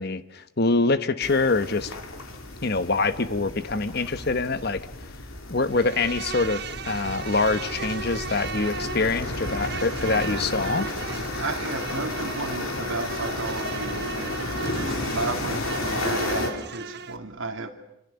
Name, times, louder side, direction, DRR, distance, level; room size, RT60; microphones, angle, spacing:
voice 1, 0.0-2.0 2.6-4.9 5.5-10.9, left 3 dB, 50° left, 1.1 m, -25 dB
sound 1, 1.2-16.5, left 2 dB, 85° left, 3.4 m, -33 dB
Insect, 5.7-17.2, right 5 dB, 50° right, 1.2 m, -36 dB
voice 2, 11.4-17.7, right 2 dB, 75° right, 2.8 m, -33 dB
27.5 x 26.5 x 7.0 m
head